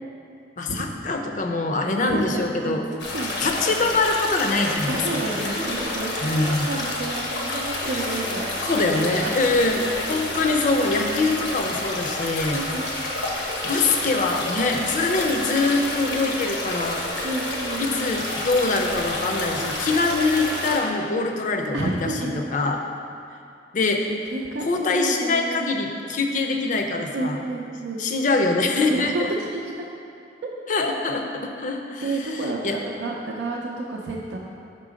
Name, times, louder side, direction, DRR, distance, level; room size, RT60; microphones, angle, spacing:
voice 1, 0.6-2.8 3.4-5.0 5.4-5.5 6.2-6.7 8.6-12.6 13.6-17.0 17.8-22.8 23.7-24.1 24.6-27.4 28.0-29.3 30.7-32.8, left 3 dB, 45° left, 3 dB, 0.5 m, -24 dB
voice 2, 2.1-2.8 3.1-3.4 3.7-3.9 4.9-6.4 6.7-9.3 12.5-12.9 17.2-18.2 21.7-22.5 24.1-25.6 27.1-28.0 28.9-29.6 32.0-34.4, right 2 dB, 90° right, -2 dB, 0.5 m, -30 dB
sound 1, 3.0-20.8, left 1 dB, 85° left, 0.9 m, -29 dB
5.7 x 3.8 x 5.0 m, 2.6 s
head